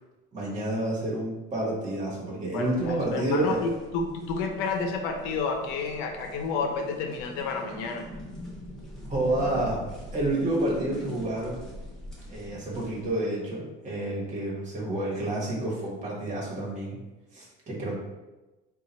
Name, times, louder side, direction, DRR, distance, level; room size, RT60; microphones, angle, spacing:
voice 1, 0.3-3.6 9.1-9.8 10.1-11.7 12.3-17.0 17.3-17.9, right 1 dB, 35° right, -4 dB, 1.5 m, -29 dB
voice 2, 2.5-8.1, left 4 dB, 80° left, 4 dB, 0.7 m, -30 dB
sound 1, 2.6-13.1, equal, 5° left, 1.0 m, -43 dB
3.8 x 2.5 x 4.2 m, 1.1 s
cardioid pair, 135°, 21 cm